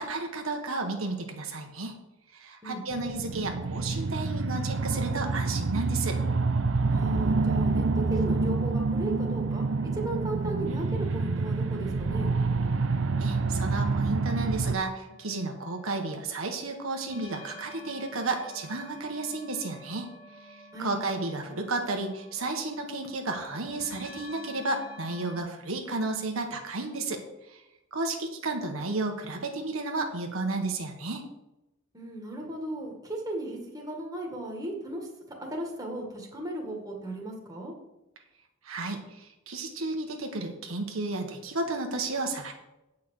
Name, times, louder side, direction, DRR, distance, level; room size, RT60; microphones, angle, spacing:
voice 1, 0.0-1.9 2.3-6.2 13.2-20.1 20.4-27.2 27.5-27.6 27.9-31.2 38.6-42.5, right 3 dB, 90° right, 3 dB, 1.4 m, -32 dB
sound 1, 2.9-14.8, right 3 dB, 65° right, 0.6 m, -27 dB
voice 2, 6.9-9.6 9.9-12.3 20.7-21.0 31.9-35.1 35.4-37.7, right 1 dB, 20° right, -1 dB, 1.9 m, -36 dB
sound 2, 15.1-25.4, left 1 dB, 80° left, 1.7 m, -49 dB
8.9 x 5.6 x 6.4 m, 0.95 s
head